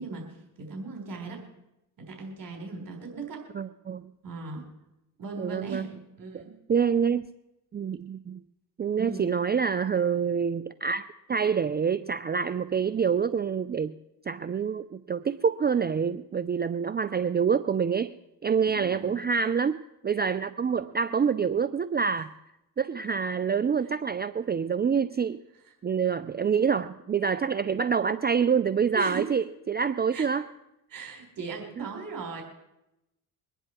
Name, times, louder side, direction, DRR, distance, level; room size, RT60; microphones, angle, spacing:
voice 1, 0.0-1.4 2.0-3.5 4.2-4.7 5.2-6.5 9.0-9.3 18.6-19.1 28.9-29.3 30.1-30.3 30.9-32.4, right 4 dB, 50° right, 2 dB, 3.8 m, -38 dB
voice 2, 3.5-4.1 5.4-5.8 6.7-7.3 7.7-8.4 8.8-11.0 11.3-14.0 14.3-18.1 18.4-19.8 20.0-22.3 22.8-25.4 25.8-30.5 31.8-31.9, right 6 dB, 25° right, 12 dB, 0.5 m, -26 dB
23.5 x 10.0 x 4.4 m, 0.89 s
supercardioid pair, 75°, 43 cm